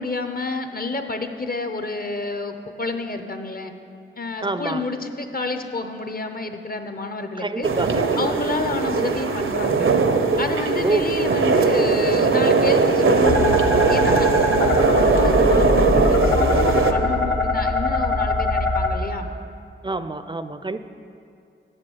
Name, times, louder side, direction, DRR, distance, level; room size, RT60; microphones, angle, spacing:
voice 1, 0.0-3.7 4.2-7.7 8.2-9.9 10.4-13.6 13.9-19.3, left 3 dB, 45° left, 7 dB, 0.7 m, -29 dB
voice 2, 4.4-4.8 7.4-8.3 10.8-11.1 19.8-20.8, right 3 dB, 25° right, 11 dB, 0.4 m, -27 dB
sound 1, 7.6-16.9, right 4 dB, 75° right, 0.6 m, -19 dB
sound 2, 13.2-18.9, left 2 dB, 70° left, 1.0 m, -22 dB
7.3 x 6.7 x 7.2 m, 2.5 s
wide cardioid pair, 55°, 21 cm